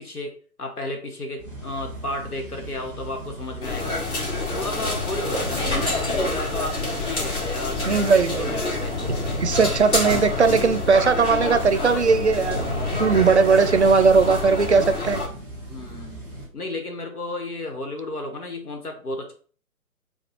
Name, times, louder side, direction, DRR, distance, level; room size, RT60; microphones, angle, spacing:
voice 1, 0.0-4.0 4.3-9.1 9.9-10.1 10.4-10.8 11.8-12.0 15.7-16.3 16.5-19.3, left 2 dB, 80° left, 4 dB, 1.3 m, -33 dB
sound 1, 1.4-16.5, right 1 dB, 5° left, 0.7 m, -36 dB
sound 2, 3.6-15.3, left 2 dB, 45° left, 2.1 m, -27 dB
voice 2, 7.9-8.5 9.4-12.7 13.0-15.2, right 5 dB, 50° right, 9 dB, 0.5 m, -18 dB
6.6 x 2.3 x 3.0 m, 0.42 s
figure-of-eight pair, 135°, 44 cm